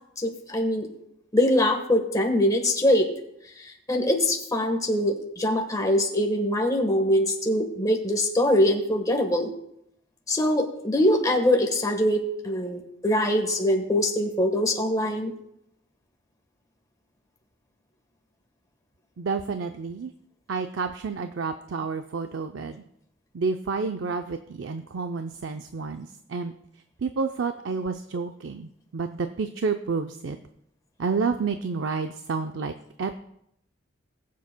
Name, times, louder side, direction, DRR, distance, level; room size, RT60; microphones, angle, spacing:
voice 1, 0.2-0.9 1.3-3.1 3.9-9.5 10.3-15.3, left 1 dB, 20° left, 3 dB, 1.2 m, -23 dB
voice 2, 19.2-20.1 20.5-22.8 23.3-26.5 27.0-30.4 31.0-33.2, right 4 dB, 70° right, 7 dB, 0.5 m, -30 dB
21.0 x 7.5 x 2.2 m, 0.77 s
head